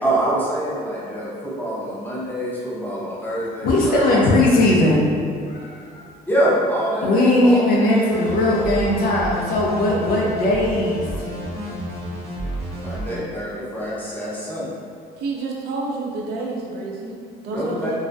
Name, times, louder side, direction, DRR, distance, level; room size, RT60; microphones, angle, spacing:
voice 1, 0.0-4.2 6.3-8.9 12.7-14.7 17.4-17.9, right 1 dB, 10° left, -8 dB, 0.7 m, -25 dB
voice 2, 3.6-5.0 5.5-6.1 7.0-11.0, left 1 dB, 60° left, -3 dB, 0.5 m, -18 dB
sound 1, 8.1-13.1, right 1 dB, 40° right, 0.7 m, -31 dB
voice 3, 15.2-18.0, right 3 dB, 70° right, -2 dB, 0.5 m, -29 dB
2.3 x 2.1 x 2.6 m, 2.2 s
cardioid pair, 110°, 17 cm